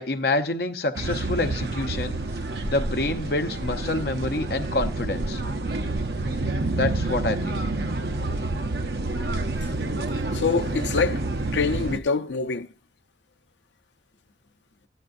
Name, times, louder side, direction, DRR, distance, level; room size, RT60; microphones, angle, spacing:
voice 1, 0.0-2.2 2.6-5.4 6.7-7.6, left 2 dB, 60° left, 0.8 m, -27 dB
sound 1, 0.9-12.0, right 2 dB, 60° right, 0.7 m, -28 dB
voice 2, 10.3-11.2 11.5-12.7, left 4 dB, 80° left, 0.6 m, -25 dB
13.5 x 9.9 x 2.6 m
head